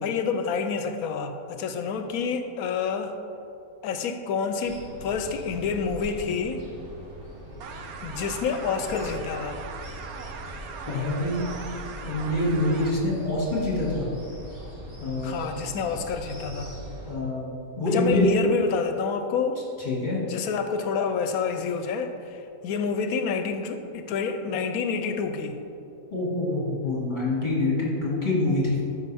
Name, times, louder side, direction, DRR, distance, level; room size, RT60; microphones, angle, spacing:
voice 1, 0.0-3.1 3.8-6.6 8.0-9.6 15.2-16.8 17.9-19.6 20.3-25.6, left 5 dB, 85° left, 7 dB, 1.1 m, -28 dB
sound 1, 4.6-17.1, equal, 55° right, 2.1 m, -41 dB
sound 2, 7.6-12.9, right 6 dB, 90° right, 1.2 m, -40 dB
voice 2, 10.9-11.4 12.0-14.1 15.0-15.3 17.0-17.5 17.8-18.3 19.8-20.2 26.1-28.8, left 2 dB, 35° left, -6 dB, 2.3 m, -25 dB
12.5 x 5.3 x 3.4 m, 2.8 s
omnidirectional pair, 1.5 m